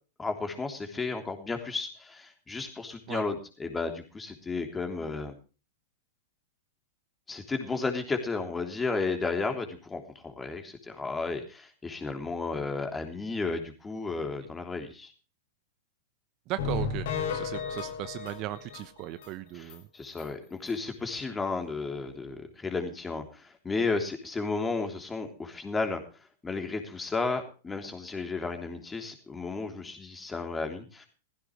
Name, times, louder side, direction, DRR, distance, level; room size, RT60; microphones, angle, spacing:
voice 1, 0.2-5.3 7.3-15.1 19.5-26.0 26.4-31.1, left 3 dB, 15° left, 5 dB, 3.3 m, -33 dB
voice 2, 16.5-17.1 17.3-19.8, right 15 dB, 40° right, 12 dB, 1.0 m, -37 dB
sound 1, 16.6-19.3 19.7-19.8 20.2-20.3 20.7-20.8, left 5 dB, 60° left, 3.4 m, -34 dB
16.5 x 15.5 x 3.2 m, 0.34 s
figure-of-eight pair, 95°, 0 cm